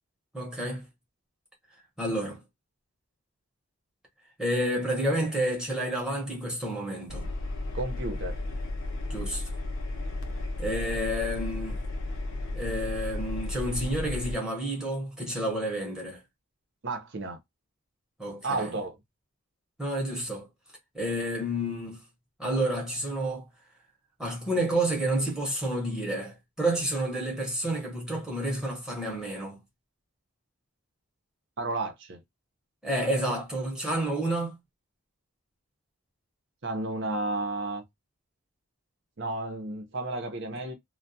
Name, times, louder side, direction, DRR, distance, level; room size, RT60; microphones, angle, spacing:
voice 1, 0.3-0.8 2.0-2.4 4.4-7.3 9.1-9.4 10.6-11.8 12.5-16.2 18.2-18.7 19.8-20.5 20.9-22.0 22.4-23.5 24.2-29.6 32.8-34.6, right 1 dB, 5° right, 0.9 m, -30 dB
Engine, 7.1-14.4, left 2 dB, 60° left, 0.6 m, -33 dB
voice 2, 7.7-8.4 16.8-17.4 18.4-19.0 31.6-32.2 36.6-37.8 39.2-40.7, right 2 dB, 55° right, 0.7 m, -32 dB
2.2 x 2.2 x 2.7 m
head